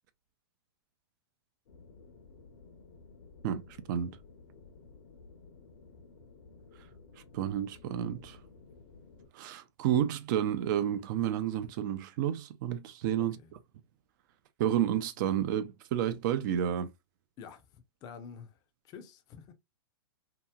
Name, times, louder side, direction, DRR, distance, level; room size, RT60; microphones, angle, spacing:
sound 1, 1.7-9.3, left 4 dB, 65° left, 0.9 m, -55 dB
voice 1, 7.3-8.4 9.3-13.4 14.6-16.9, right 10 dB, 45° right, 0.5 m, -30 dB
voice 2, 17.4-18.6 18.8-19.5, left 6 dB, 30° left, 0.6 m, -48 dB
2.8 x 2.7 x 2.2 m
hypercardioid pair, 135°, 14 cm